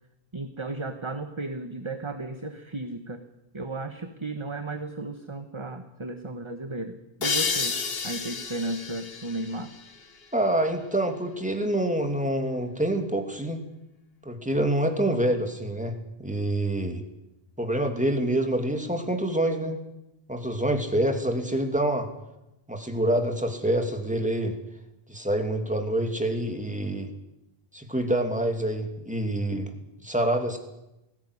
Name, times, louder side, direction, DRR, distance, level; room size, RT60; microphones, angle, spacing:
voice 1, 0.3-3.2 3.5-7.8 8.0-9.7, right 2 dB, 30° right, 7 dB, 1.2 m, -34 dB
sound 1, 7.2-10.6, left 5 dB, 70° left, 1.6 m, -31 dB
voice 2, 10.3-13.6 14.2-17.0 17.6-19.8 20.3-22.1 22.7-24.6 25.1-27.1 27.7-29.7 30.0-30.6, right 1 dB, 5° right, 4 dB, 2.7 m, -26 dB
20.0 x 16.5 x 9.9 m, 0.93 s
omnidirectional pair, 1.0 m